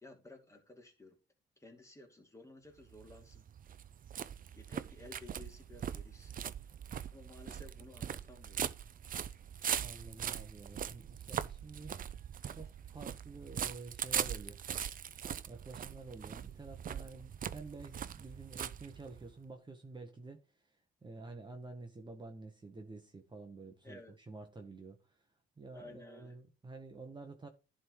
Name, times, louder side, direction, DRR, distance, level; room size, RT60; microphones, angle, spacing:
voice 1, 0.0-1.2 1.6-3.4 4.5-6.4 7.1-8.6 9.6-9.8 23.8-24.1 25.7-26.4, left 2 dB, 15° left, 2.5 m, -55 dB
sound 1, 2.8-19.3, right 9 dB, 45° right, 0.5 m, -41 dB
voice 2, 9.8-11.9 12.5-14.6 15.5-25.2 25.6-27.5, right 3 dB, 25° right, 1.2 m, -50 dB
11.0 x 3.7 x 4.7 m
cardioid pair, 90°, 20 cm